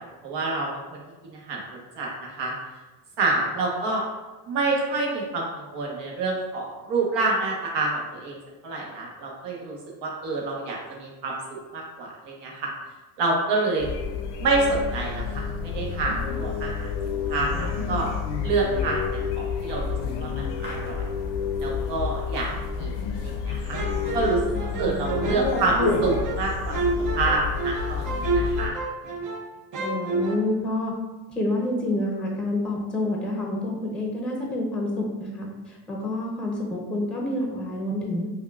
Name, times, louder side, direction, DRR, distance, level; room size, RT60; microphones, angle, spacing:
voice 1, 0.0-1.6 1.9-2.5 3.2-4.0 4.5-8.4 8.6-11.4 11.7-12.7 13.2-13.9 14.4-16.9 17.3-18.1 18.4-19.0 19.4-21.1 21.6-22.5 22.8-23.8 24.1-24.4 24.8-26.8 27.1-28.8 29.0-29.1, right 3 dB, 75° right, -2 dB, 1.1 m, -27 dB
sound 1, 13.8-28.7, left 5 dB, 85° left, 0.7 m, -29 dB
sound 2, 23.7-29.5 29.7-30.4, right 3 dB, 50° right, 0.6 m, -29 dB
voice 2, 24.5-25.4 29.8-30.9 31.3-38.3, left 1 dB, ahead, -2 dB, 0.6 m, -28 dB
5.3 x 2.3 x 2.4 m, 1.2 s
cardioid pair, 110°, 42 cm